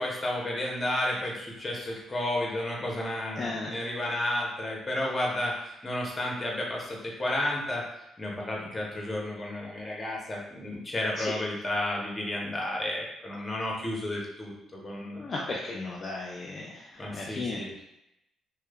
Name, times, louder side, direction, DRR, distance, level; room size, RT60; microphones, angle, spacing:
voice 1, 0.0-7.8 8.2-15.3 17.0-17.8, left 1 dB, 25° left, -2 dB, 0.7 m, -32 dB
voice 2, 3.4-3.7 11.2-11.3 15.2-17.6, left 3 dB, 45° left, -3 dB, 0.3 m, -35 dB
3.0 x 2.0 x 2.2 m, 0.84 s
cardioid pair, 90°, 0 cm